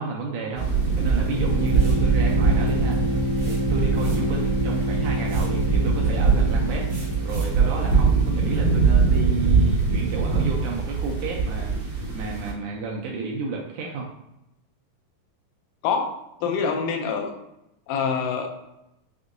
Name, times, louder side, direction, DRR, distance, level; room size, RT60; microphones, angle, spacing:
voice 1, 0.0-6.9 7.2-14.1, right 4 dB, 80° right, -1 dB, 1.9 m, -32 dB
sound 1, 0.5-12.5, right 4 dB, 45° right, 1.9 m, -22 dB
sound 2, 1.2-7.9, left 2 dB, 60° left, 2.5 m, -28 dB
sound 3, 1.7-2.1 3.4-4.4 5.3-5.6 6.9-7.6, right 3 dB, 60° right, 2.6 m, -45 dB
voice 2, 15.8-17.3 17.9-18.5, left 6 dB, 80° left, 4 dB, 2.1 m, -25 dB
6.0 x 2.6 x 2.5 m, 0.86 s
omnidirectional pair, 3.9 m